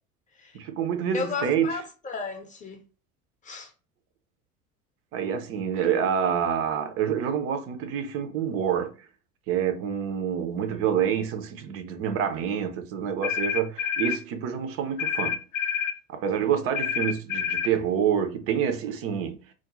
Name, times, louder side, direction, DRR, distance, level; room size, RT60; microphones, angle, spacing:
voice 1, 0.5-1.8 5.1-8.9 9.5-15.4 16.1-19.4, right 8 dB, 35° right, 0.5 m, -27 dB
voice 2, 1.1-2.8 3.4-3.7, left 4 dB, 20° left, 0.7 m, -33 dB
sound 1, 13.2-14.2 15.0-16.0 16.7-17.7, left 8 dB, 65° left, 0.5 m, -28 dB
2.4 x 2.2 x 2.9 m
figure-of-eight pair, 70°, 43 cm